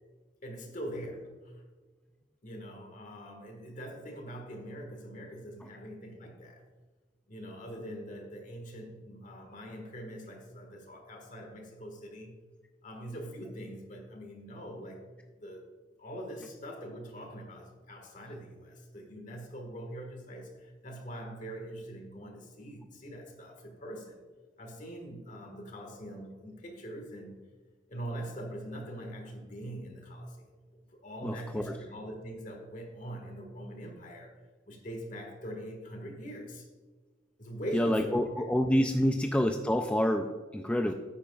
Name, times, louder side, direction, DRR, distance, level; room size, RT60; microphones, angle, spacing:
voice 1, 0.4-1.6 2.4-6.6 7.3-12.4 12.8-15.0 15.4-15.6 16.0-24.2 24.6-27.4 27.9-30.5 30.9-34.3 34.7-36.7 37.4-38.3 38.9-39.0 40.8-40.9, equal, 45° left, 2 dB, 1.6 m, -43 dB
voice 2, 31.2-31.8 37.7-40.9, equal, 5° left, 5 dB, 0.3 m, -28 dB
10.0 x 8.7 x 2.3 m, 1.4 s
head